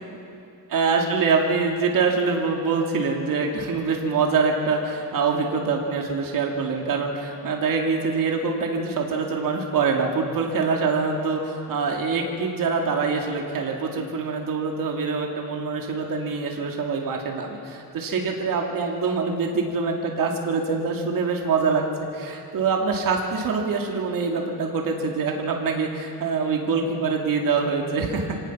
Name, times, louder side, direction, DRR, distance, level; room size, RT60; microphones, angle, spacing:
voice 1, 0.7-21.9 22.1-28.2, right 4 dB, 60° right, 1 dB, 2.3 m, -24 dB
26.0 x 18.5 x 6.0 m, 2.5 s
cardioid pair, 140°, 38 cm